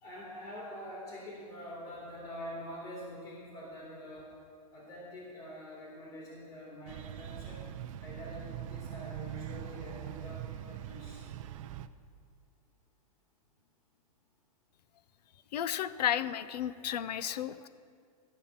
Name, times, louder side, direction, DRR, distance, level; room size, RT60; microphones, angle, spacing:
voice 1, 0.0-4.3 4.7-7.7 8.0-11.3, equal, 40° left, -5 dB, 3.0 m, -45 dB
sound 1, 6.9-11.9, right 11 dB, 55° right, 0.5 m, -42 dB
voice 2, 15.5-17.7, left 10 dB, 85° left, 16 dB, 0.5 m, -33 dB
14.0 x 5.7 x 7.2 m, 2.2 s
hypercardioid pair, 145°, 20 cm